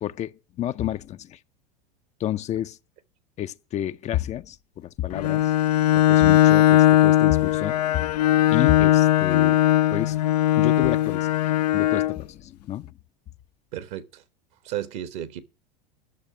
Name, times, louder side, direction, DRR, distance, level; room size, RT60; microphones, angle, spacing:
voice 1, 0.0-1.4 2.2-2.8 3.4-5.5 6.1-8.0 8.5-9.6 9.9-10.2 10.5-11.3 11.7-12.9, left 12 dB, 35° left, 0.6 m, -30 dB
Bowed string instrument, 5.1-12.2, left 13 dB, 75° left, 0.5 m, -19 dB
voice 2, 13.7-14.2 14.6-15.4, right 11 dB, 60° right, 1.5 m, -33 dB
11.5 x 6.6 x 9.5 m
hypercardioid pair, 85°, 21 cm